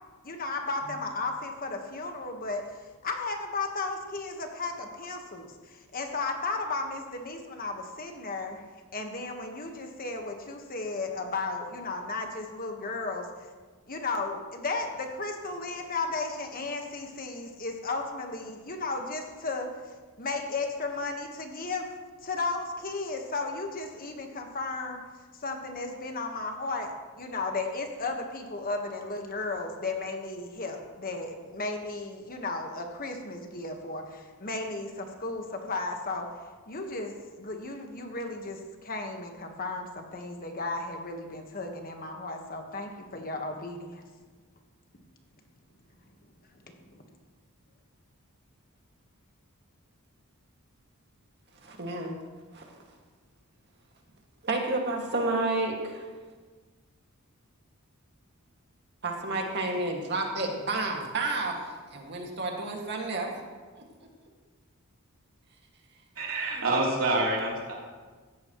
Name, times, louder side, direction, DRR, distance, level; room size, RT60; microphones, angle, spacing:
voice 1, 0.2-2.6 3.0-8.6 8.9-13.3 13.9-19.7 20.2-21.9 22.2-25.0 25.4-36.3 36.7-44.0 46.9-47.0, left 3 dB, 40° left, 3 dB, 1.4 m, -34 dB
voice 2, 51.6-52.1 52.5-52.8 54.4-56.1 59.0-63.3 63.8-64.1 66.5-66.6, right 2 dB, 50° right, 1 dB, 2.1 m, -31 dB
voice 3, 66.2-67.7, right 2 dB, 65° right, -4 dB, 3.6 m, -27 dB
16.5 x 14.0 x 3.1 m, 1.4 s
head